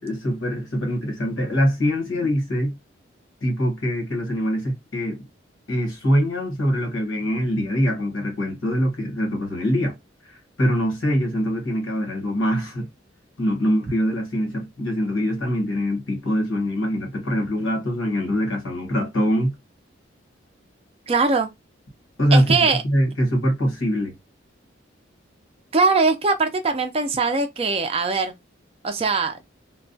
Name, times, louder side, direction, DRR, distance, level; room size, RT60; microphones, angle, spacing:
voice 1, 0.0-2.8 3.4-5.2 5.7-10.0 10.6-12.9 13.4-19.5 22.2-24.2, equal, 85° left, 1.2 m, -23 dB
voice 2, 21.1-21.5 22.3-22.8 25.7-28.3 28.8-29.4, right 4 dB, 30° right, 0.4 m, -21 dB
2.2 x 2.2 x 2.5 m
head